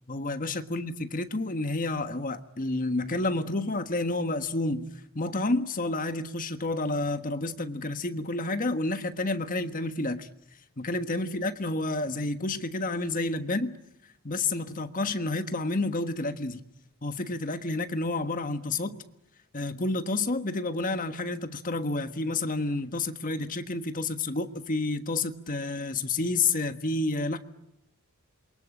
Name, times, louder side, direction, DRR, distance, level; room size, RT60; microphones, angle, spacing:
voice 1, 0.1-4.9 5.1-10.3 10.8-13.7 14.2-16.6 17.0-19.0 19.5-27.4, left 2 dB, 40° left, 8 dB, 1.4 m, -30 dB
28.0 x 23.0 x 9.0 m, 0.84 s
head